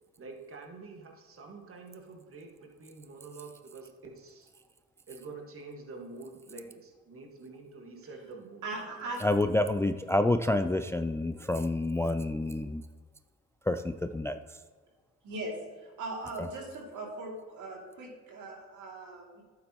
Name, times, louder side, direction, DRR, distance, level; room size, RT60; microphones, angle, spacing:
voice 1, 0.2-4.5 5.1-8.6 9.0-9.2 15.3-15.5, right 3 dB, 45° right, 2 dB, 1.8 m, -47 dB
voice 2, 8.6-9.2 15.2-19.4, right 2 dB, 75° right, -1 dB, 2.8 m, -39 dB
voice 3, 9.2-12.8 13.7-14.4 16.4-16.5, left 2 dB, 10° left, 9 dB, 0.3 m, -28 dB
11.5 x 8.6 x 3.1 m, 1.4 s
cardioid pair, 90°, 30 cm